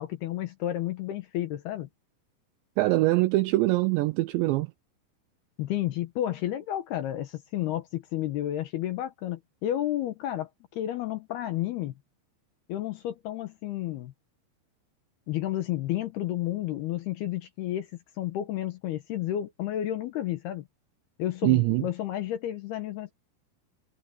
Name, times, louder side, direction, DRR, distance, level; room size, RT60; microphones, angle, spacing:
voice 1, 0.0-1.9 5.6-11.9 12.7-14.1 15.3-17.9 18.2-20.7 21.2-23.1, left 13 dB, 70° left, 2.6 m, -31 dB
voice 2, 2.8-4.7 21.4-21.9, right 19 dB, 85° right, 2.6 m, -23 dB
omnidirectional pair, 5.7 m